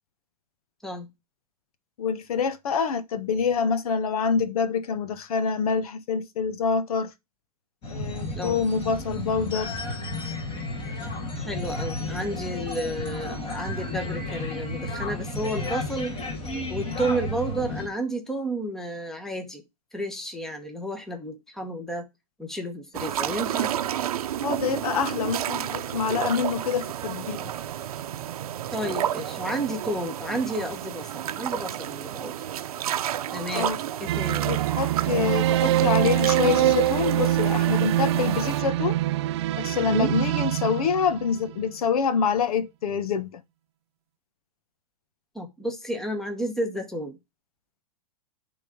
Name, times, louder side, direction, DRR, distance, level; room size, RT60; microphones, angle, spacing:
voice 1, 2.0-7.1 7.9-9.7 24.4-27.5 33.5-33.8 34.4-39.0 39.6-43.4, left 6 dB, 70° left, 1.2 m, -26 dB
sound 1, 7.8-17.9, left 2 dB, 30° left, 3.4 m, -32 dB
voice 2, 11.4-16.1 16.7-19.6 19.9-22.0 22.4-23.7 28.7-32.3 33.3-33.7 34.0-34.5 39.9-40.2 45.3-47.2, right 1 dB, ahead, 1.1 m, -31 dB
sound 2, 22.9-38.6, right 11 dB, 70° right, 0.7 m, -31 dB
sound 3, 34.1-41.6, right 13 dB, 50° right, 0.4 m, -24 dB
10.5 x 3.9 x 5.0 m
hypercardioid pair, 155°, 19 cm